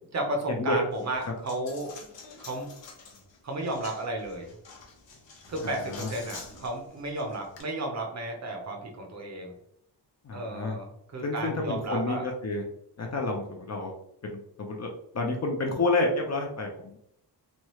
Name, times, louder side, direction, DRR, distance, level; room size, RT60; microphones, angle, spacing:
voice 1, 0.1-1.9 2.4-2.8 3.4-4.5 5.5-9.5 10.3-12.2, right 1 dB, 40° right, 2 dB, 0.6 m, -33 dB
Coin (dropping), 0.9-7.6, left 4 dB, 85° left, 0.9 m, -48 dB
voice 2, 5.6-6.1 10.2-10.8 11.2-12.6 13.0-13.9 14.2-14.9 15.1-16.9, left 2 dB, 40° left, 2 dB, 0.5 m, -29 dB
3.1 x 2.3 x 2.9 m, 0.74 s
wide cardioid pair, 165°, 43 cm